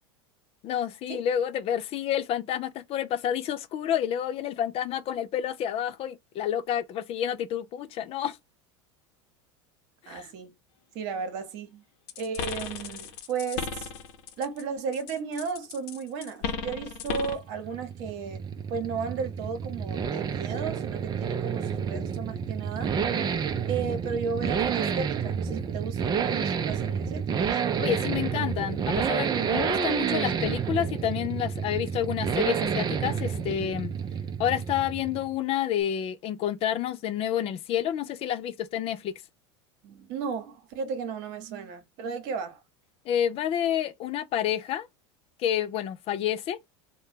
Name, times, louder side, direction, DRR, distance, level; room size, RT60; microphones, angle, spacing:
voice 1, 0.6-8.4 10.0-10.3 27.8-33.9 34.4-39.1 43.1-44.9 45.4-46.6, left 10 dB, 40° left, 0.4 m, -29 dB
voice 2, 10.1-10.5 10.9-11.8 12.2-13.9 14.4-18.4 18.7-23.0 23.7-27.6 39.8-42.6, right 6 dB, 60° right, 1.0 m, -34 dB
sound 1, 12.1-14.6 14.9-17.5, left 6 dB, 65° left, 0.7 m, -35 dB
sound 2, 17.3-35.3, right 7 dB, 30° right, 0.5 m, -29 dB
2.7 x 2.2 x 3.4 m
hypercardioid pair, 90°, 15 cm